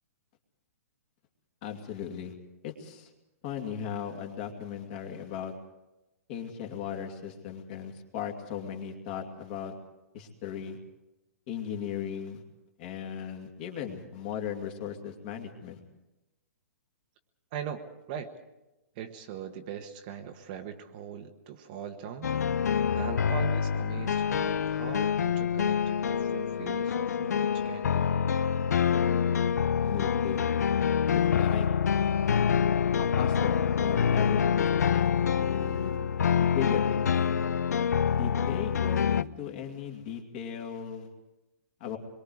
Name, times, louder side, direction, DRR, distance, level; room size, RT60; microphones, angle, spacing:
voice 1, 1.6-2.3 2.6-3.1 3.4-5.5 6.3-9.7 10.1-10.8 11.5-12.4 12.8-15.8 29.8-30.4 31.3-31.7 31.9-32.1 33.0-35.1 35.4-36.0 36.4-37.2 38.1-41.1 41.8-42.0, left 8 dB, 35° left, 3 dB, 2.6 m, -37 dB
voice 2, 17.5-17.8 18.1-18.3 18.9-22.3 22.5-28.1, right 8 dB, 30° right, 5 dB, 1.3 m, -40 dB
sound 1, 22.2-39.2, left 7 dB, 90° left, 0.6 m, -26 dB
26.0 x 22.5 x 4.8 m, 0.97 s
hypercardioid pair, 165°, 9 cm